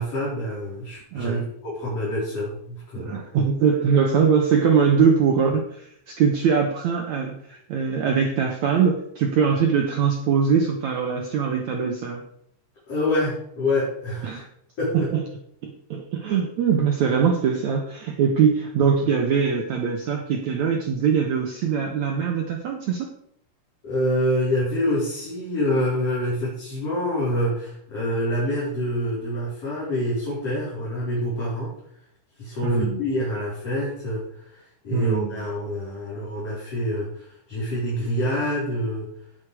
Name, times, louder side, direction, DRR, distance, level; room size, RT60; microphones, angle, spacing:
voice 1, 0.0-3.1 12.9-14.4 14.8-15.1 23.8-31.7 32.4-34.4 34.8-39.1, left 1 dB, 35° left, -8 dB, 5.0 m, -26 dB
voice 2, 1.1-1.5 3.0-12.2 14.2-14.5 14.9-15.2 15.6-23.1 32.6-33.0 34.9-35.3, right 6 dB, 85° right, 2 dB, 1.6 m, -22 dB
17.5 x 6.5 x 4.8 m, 0.71 s
omnidirectional pair, 4.9 m